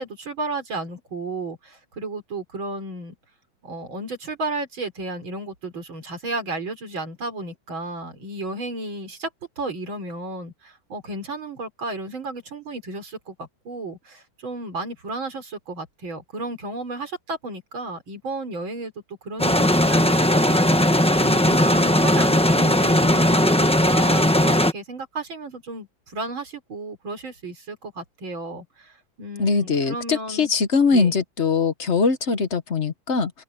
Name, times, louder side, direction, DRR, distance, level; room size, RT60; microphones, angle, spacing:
voice 1, 0.0-3.1 3.6-9.3 9.6-30.5 30.9-31.1, right 2 dB, 80° right, 4.9 m, -33 dB
sound 1, 19.4-24.7, left 1 dB, 5° left, 0.8 m, -18 dB
voice 2, 29.4-33.3, left 4 dB, 40° left, 1.3 m, -21 dB
omnidirectional pair, 2.1 m